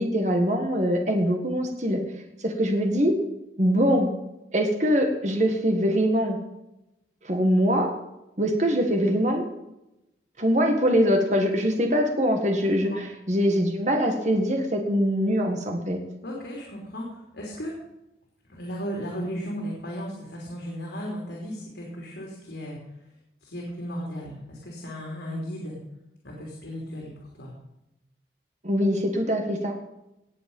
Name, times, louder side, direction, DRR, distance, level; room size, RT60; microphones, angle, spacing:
voice 1, 0.0-2.0 2.4-3.2 3.6-4.1 4.5-6.4 7.2-7.9 8.4-9.5 10.4-16.0 28.6-29.7, equal, 40° right, 3 dB, 1.8 m, -23 dB
voice 2, 16.2-17.7 18.5-22.8 23.4-25.8 26.2-27.1 27.4-27.5, equal, 85° left, -2 dB, 3.3 m, -35 dB
18.5 x 7.7 x 5.5 m, 0.91 s
head